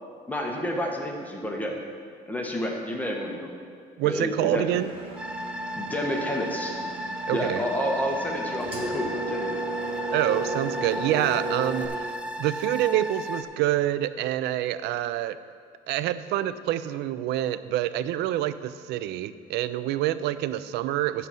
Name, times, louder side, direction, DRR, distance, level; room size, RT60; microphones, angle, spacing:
voice 1, 0.3-1.8 2.3-3.5 4.0-4.8 5.7-6.7 7.3-9.6, equal, 10° left, 0 dB, 1.2 m, -30 dB
voice 2, 4.0-4.9 7.3-7.6 10.1-12.1 12.4-15.4 15.9-21.3, right 13 dB, 80° right, 14 dB, 0.4 m, -27 dB
Engine, 4.7-11.9, right 2 dB, 35° right, 1.7 m, -34 dB
sound 1, 5.2-13.4, equal, 5° right, 0.5 m, -35 dB
11.0 x 4.1 x 7.5 m, 2.2 s
cardioid pair, 110°, 17 cm